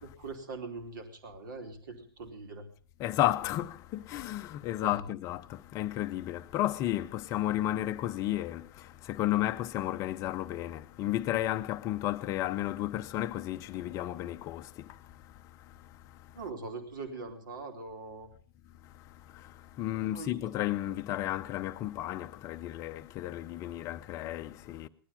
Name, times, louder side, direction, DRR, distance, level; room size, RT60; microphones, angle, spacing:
voice 1, 0.0-2.7 4.8-5.0 16.3-18.3 19.7-20.5, right 3 dB, 55° right, 3.3 m, -42 dB
voice 2, 3.0-15.0 19.3-24.9, left 14 dB, 25° left, 0.7 m, -33 dB
19.0 x 12.5 x 5.5 m
figure-of-eight pair, 110°, 13 cm